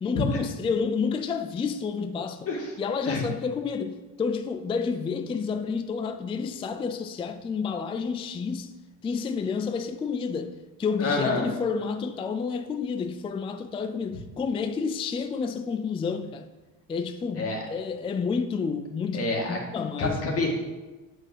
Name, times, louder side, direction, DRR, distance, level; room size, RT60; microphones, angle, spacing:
voice 1, 0.0-2.5 2.8-8.7 9.0-16.5 16.9-20.2, left 5 dB, 15° left, 0.4 m, -30 dB
voice 2, 11.0-11.5 17.4-17.6 19.1-19.6 20.0-20.5, left 3 dB, 35° left, 2.2 m, -27 dB
8.2 x 6.0 x 6.2 m
cardioid pair, 130°, 39 cm